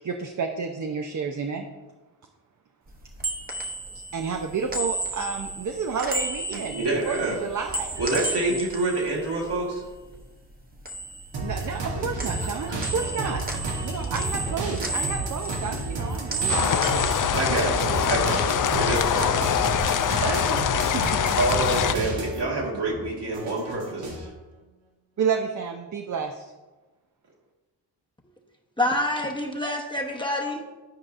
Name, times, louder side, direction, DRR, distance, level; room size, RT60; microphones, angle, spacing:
voice 1, 0.0-1.7 4.1-8.1 11.4-17.7 20.2-21.2 25.2-26.5, right 5 dB, 45° right, 4 dB, 0.6 m, -31 dB
sound 1, 2.9-10.2 10.5-11.9 12.2-18.2 18.5-19.8, right 3 dB, 20° right, 0.9 m, -34 dB
voice 2, 6.5-7.4 8.0-9.8 17.4-19.7 21.4-24.3, right 2 dB, 65° right, -3 dB, 1.9 m, -27 dB
sound 2, 11.3-22.5 22.9-24.3, right 2 dB, 80° right, 1.3 m, -31 dB
sound 3, 16.5-21.9, left 9 dB, 50° left, 0.4 m, -24 dB
voice 3, 28.8-30.8, left 1 dB, 10° left, 0 dB, 0.9 m, -27 dB
10.5 x 4.7 x 2.5 m, 1.2 s
cardioid pair, 50°, 44 cm